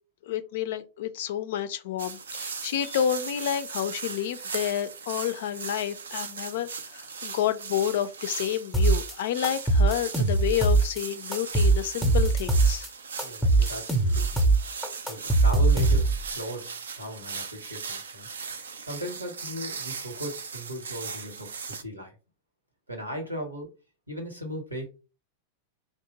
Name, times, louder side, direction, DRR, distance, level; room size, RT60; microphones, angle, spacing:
voice 1, 0.2-12.9, left 10 dB, 55° left, 0.3 m, -30 dB
sound 1, 2.0-21.8, right 5 dB, 70° right, 0.3 m, -38 dB
sound 2, 8.7-9.1 9.4-11.0 11.3-12.9 13.2-16.3, right 3 dB, ahead, 0.6 m, -21 dB
voice 2, 13.2-14.4 15.1-16.7 16.9-18.3 18.6-22.1 22.9-23.7 24.1-24.9, equal, 85° right, 0.9 m, -37 dB
2.8 x 2.1 x 2.8 m
figure-of-eight pair, 90°, 0 cm